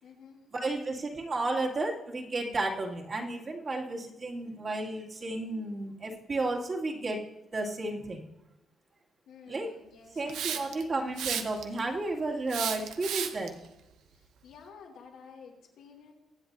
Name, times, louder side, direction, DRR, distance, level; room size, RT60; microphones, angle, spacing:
voice 1, 0.0-0.4 9.2-10.9 14.1-16.1, left 6 dB, 85° left, -1 dB, 3.2 m, -52 dB
voice 2, 0.5-7.2 7.5-8.2 9.5-9.7 10.2-13.5, right 2 dB, 40° right, -2 dB, 2.4 m, -32 dB
Hiss, 10.3-10.8 11.2-11.8 12.5-13.5, right 8 dB, 85° right, 0.9 m, -33 dB
22.5 x 7.9 x 2.7 m, 0.93 s
cardioid pair, 90°, 0 cm